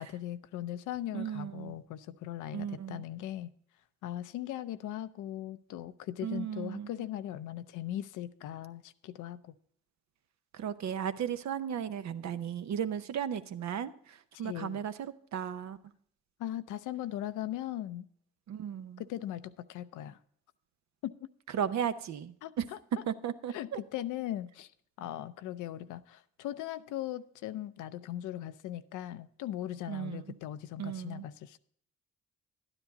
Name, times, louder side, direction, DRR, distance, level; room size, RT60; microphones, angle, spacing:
voice 1, 0.0-3.5 4.0-9.5 14.4-14.8 16.4-18.1 19.0-20.2 21.0-21.1 22.4-22.8 23.5-24.7 25.0-31.6, left 12 dB, 80° left, 0.5 m, -39 dB
voice 2, 1.1-1.8 2.5-3.0 6.2-6.9 10.5-15.8 18.5-19.0 21.5-22.6 23.1-23.8 29.9-30.3 30.8-31.2, right 8 dB, 65° right, 0.7 m, -35 dB
11.5 x 10.0 x 3.9 m
supercardioid pair, 50°, 30 cm